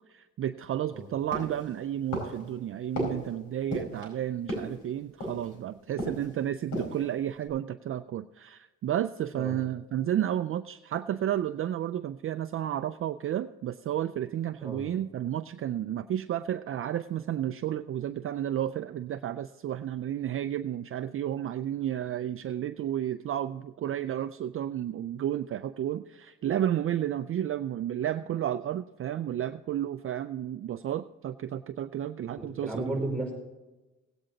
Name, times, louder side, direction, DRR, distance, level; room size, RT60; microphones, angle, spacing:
voice 1, 0.1-32.9, right 11 dB, 45° right, 10 dB, 0.4 m, -32 dB
sound 1, 1.3-1.7 2.1-2.5 3.0-3.3 3.7-4.1 4.5-4.8 5.2-5.6 6.0-6.3 6.6-7.0 7.4-7.5, equal, 80° left, 4.9 m, -34 dB
voice 2, 32.4-33.3, right 2 dB, 5° left, 0 dB, 5.2 m, -33 dB
17.5 x 8.8 x 3.9 m, 1.1 s
cardioid pair, 90°, 30 cm